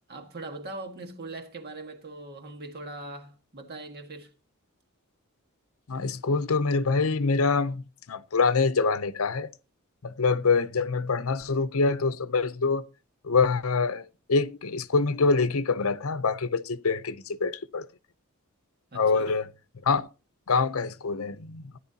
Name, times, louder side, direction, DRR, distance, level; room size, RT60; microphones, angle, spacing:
voice 1, 0.1-4.3 18.9-19.4, right 2 dB, 50° right, 1.6 m, -41 dB
voice 2, 5.9-7.8 8.1-9.5 10.0-12.9 13.2-17.9 18.9-19.5 19.9-20.1 20.5-21.8, left 4 dB, 75° left, 0.7 m, -25 dB
16.0 x 10.5 x 2.8 m
head